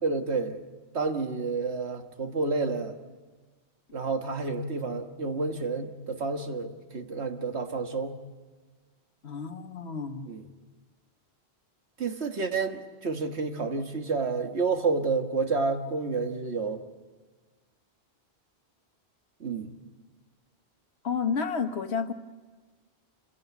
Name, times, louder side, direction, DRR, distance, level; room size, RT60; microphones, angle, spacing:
voice 1, 0.0-0.6 0.9-3.0 3.9-8.2 10.3-10.4 12.0-16.8 19.4-19.8, right 4 dB, 85° right, 5 dB, 1.8 m, -30 dB
voice 2, 9.2-10.3 21.0-22.1, left 5 dB, 80° left, 8 dB, 1.5 m, -30 dB
28.0 x 17.0 x 8.2 m, 1.4 s
omnidirectional pair, 1.1 m